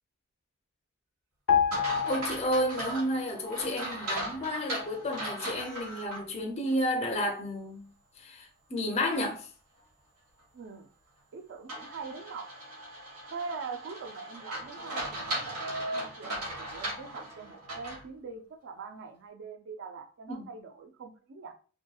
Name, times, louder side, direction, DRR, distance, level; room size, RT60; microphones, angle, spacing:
sound 1, 1.5-3.1 3.4-3.6, left 8 dB, 85° left, 0.4 m, -29 dB
sound 2, 1.7-6.2 6.7-6.8 11.7-18.0, right 1 dB, 90° right, 1.1 m, -37 dB
voice 1, 2.0-7.8 8.2-9.5 20.3-20.4, left 1 dB, 30° left, 0.4 m, -31 dB
voice 2, 10.5-10.9 11.3-12.5 13.3-21.5, right 5 dB, 55° right, 0.4 m, -43 dB
2.7 x 2.6 x 2.3 m
head